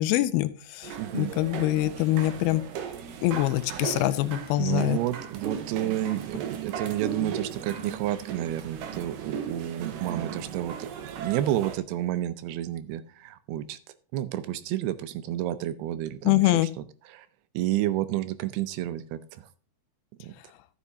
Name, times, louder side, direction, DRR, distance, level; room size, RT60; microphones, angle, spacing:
voice 1, 0.0-2.6 3.2-5.0 16.2-16.7, left 16 dB, 80° left, 14 dB, 2.5 m, -24 dB
sound 1, 0.8-11.8, right 7 dB, 70° right, 2.6 m, -37 dB
voice 2, 1.0-1.3 3.8-4.0 4.6-13.8 14.1-16.7 17.1-17.3 17.5-19.4 20.2-20.3, right 13 dB, 85° right, 13 dB, 2.8 m, -30 dB
12.5 x 8.5 x 2.8 m, 0.37 s
omnidirectional pair, 4.5 m